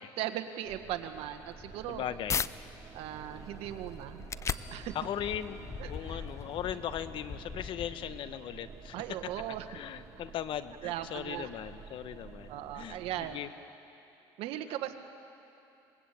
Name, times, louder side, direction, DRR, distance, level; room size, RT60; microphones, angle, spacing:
voice 1, 0.2-2.0 2.9-4.3 4.7-4.9 5.8-6.2 8.9-9.7 10.8-11.5 12.5-13.4 14.4-14.9, right 12 dB, 70° right, 7 dB, 1.7 m, -38 dB
sound 1, 0.6-13.4, right 5 dB, 35° right, 2.4 m, -50 dB
sound 2, 1.4-2.5 3.0-8.3, left 6 dB, 30° left, 0.5 m, -39 dB
voice 2, 1.9-2.4 4.9-5.6 5.9-8.9 9.7-13.5, left 10 dB, 55° left, 12 dB, 1.2 m, -38 dB
sound 3, 4.5-6.7, equal, 5° right, 3.8 m, -54 dB
25.0 x 20.5 x 8.5 m, 2.7 s
supercardioid pair, 105°, 10 cm